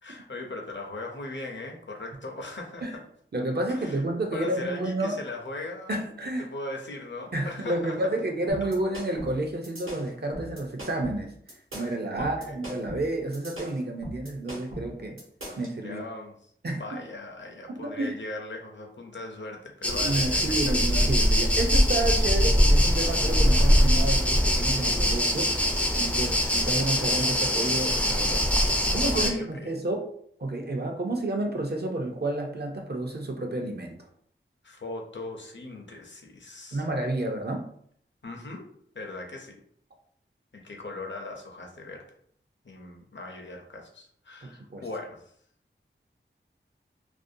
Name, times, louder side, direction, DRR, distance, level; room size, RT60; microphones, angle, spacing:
voice 1, 0.0-3.0 3.7-4.0 4.3-6.0 6.4-8.0 8.6-8.7 12.2-12.6 15.8-16.3 16.7-20.8 29.1-29.7 34.6-36.8 38.2-38.7 38.9-39.6 40.5-42.1 42.6-45.2, left 2 dB, 60° left, 2 dB, 0.5 m, -39 dB
voice 2, 3.3-5.2 5.9-6.5 7.3-11.3 11.7-15.2 15.6-16.0 16.6-16.8 17.7-18.2 20.0-28.4 28.9-30.1 30.4-34.0 36.7-37.7 44.4-44.8, right 2 dB, 50° right, 2 dB, 0.5 m, -30 dB
sound 1, 8.5-15.7, equal, 80° right, 0.9 m, -39 dB
sound 2, 19.8-29.3, equal, 5° left, 0.3 m, -22 dB
2.5 x 2.1 x 2.6 m, 0.64 s
wide cardioid pair, 50°, 21 cm